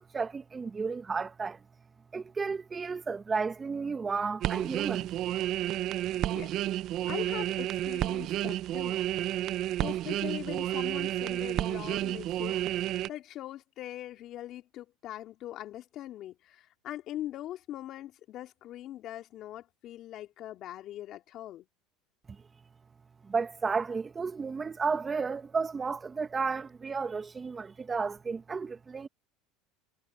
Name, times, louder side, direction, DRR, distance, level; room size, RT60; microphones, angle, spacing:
voice 1, 0.0-1.6 2.1-5.1 23.3-29.1, right 5 dB, 25° right, 1.8 m, -33 dB
sound 1, 4.4-13.1, right 13 dB, 55° right, 0.8 m, -31 dB
voice 2, 7.1-9.0 9.8-21.7, left 13 dB, 50° left, 3.0 m, -42 dB
supercardioid pair, 95°, 0 cm